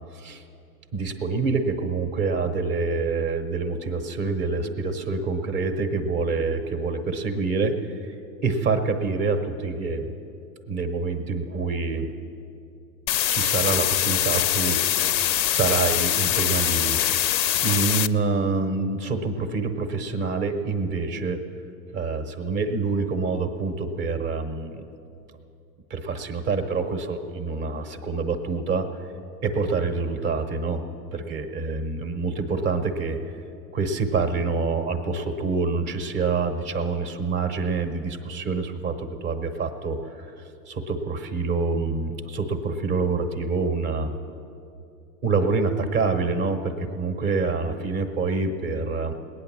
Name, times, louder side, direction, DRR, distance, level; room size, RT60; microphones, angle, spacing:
voice 1, 0.9-8.1 8.4-10.1 10.7-12.1 13.3-14.8 15.5-17.0 17.6-21.4 21.9-24.8 25.9-28.9 29.4-30.8 31.1-33.2 33.7-40.3 40.7-44.2 45.2-49.1, right 4 dB, 15° right, 8 dB, 0.5 m, -26 dB
sound 1, 13.1-18.1, left 12 dB, 85° left, 0.6 m, -23 dB
19.5 x 9.0 x 7.2 m, 2.7 s
hypercardioid pair, 145°, 49 cm